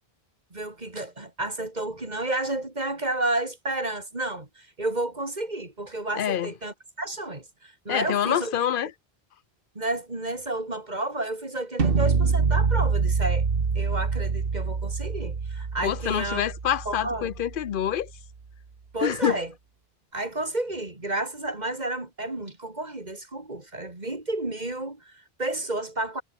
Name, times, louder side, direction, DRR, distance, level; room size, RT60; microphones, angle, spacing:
voice 1, 0.5-8.5 9.7-13.5 13.7-16.4 16.8-17.3 18.9-19.5 20.1-26.2, right 2 dB, 45° right, 3.2 m, -31 dB
voice 2, 6.1-6.5 7.9-8.9 15.8-18.1 19.0-19.4, left 10 dB, 60° left, 0.8 m, -26 dB
sound 1, 11.8-17.8, right 5 dB, 60° right, 1.7 m, -26 dB
omnidirectional pair, 1.0 m